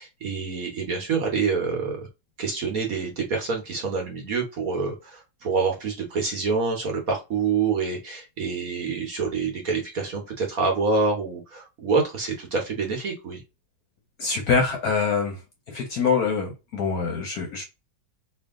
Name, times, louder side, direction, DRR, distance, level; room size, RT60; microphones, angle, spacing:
voice 1, 0.0-2.1 2.4-13.4, right 4 dB, 50° right, 1.3 m, -27 dB
voice 2, 14.2-15.4 15.7-17.6, left 5 dB, 60° left, 1.1 m, -24 dB
3.3 x 2.8 x 3.6 m
omnidirectional pair, 2.2 m